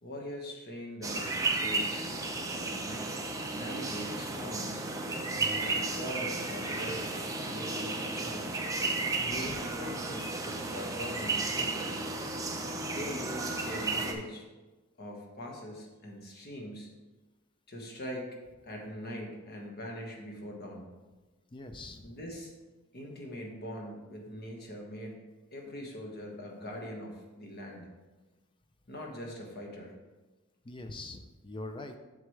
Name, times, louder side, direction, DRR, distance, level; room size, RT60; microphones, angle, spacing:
voice 1, 0.0-2.0 2.5-3.2 3.5-4.9 5.6-8.6 9.2-12.0 12.9-14.5 15.0-16.9 17.7-18.3 18.6-20.9 22.0-22.5 22.9-27.9 28.9-29.9, equal, 50° left, 0 dB, 1.5 m, -42 dB
sound 1, 1.0-14.1, right 3 dB, 15° right, 0.7 m, -33 dB
voice 2, 5.3-5.7 9.1-9.6 21.5-22.1 30.6-32.0, left 2 dB, 25° left, 7 dB, 0.4 m, -43 dB
7.9 x 7.2 x 3.3 m, 1.2 s
head